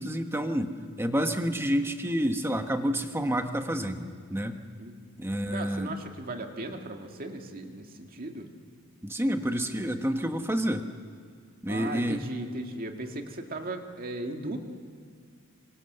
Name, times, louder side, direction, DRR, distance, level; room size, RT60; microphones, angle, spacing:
voice 1, 0.0-4.6 5.2-5.9 9.0-10.9 11.6-12.2, equal, 10° right, 6 dB, 1.3 m, -29 dB
voice 2, 5.5-8.5 11.7-14.6, right 2 dB, 40° right, 3 dB, 2.2 m, -37 dB
26.0 x 25.5 x 6.8 m, 2.1 s
head